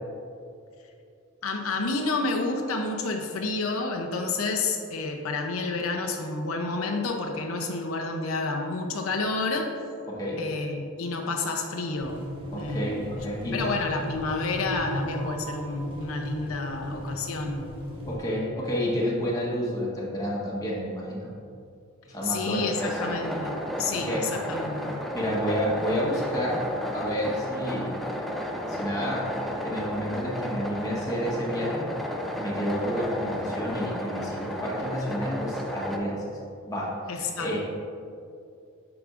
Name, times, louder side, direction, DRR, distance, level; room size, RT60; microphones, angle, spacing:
voice 1, 1.4-9.7 10.4-12.2 12.6-13.0 13.5-17.7 22.2-25.0 37.1-37.6, left 3 dB, 85° left, 2 dB, 0.6 m, -30 dB
voice 2, 10.1-10.4 12.5-13.6 18.0-21.3 22.1-23.0 23.9-24.3 25.1-26.6 26.9-27.9 28.7-29.3 29.6-31.9 32.4-36.2 36.7-37.6, equal, 15° left, -4 dB, 1.2 m, -30 dB
sound 1, 11.9-18.2, equal, 25° right, 1.5 m, -36 dB
sound 2, 22.7-36.0, equal, ahead, 0.5 m, -33 dB
8.4 x 6.0 x 2.5 m, 2.5 s
head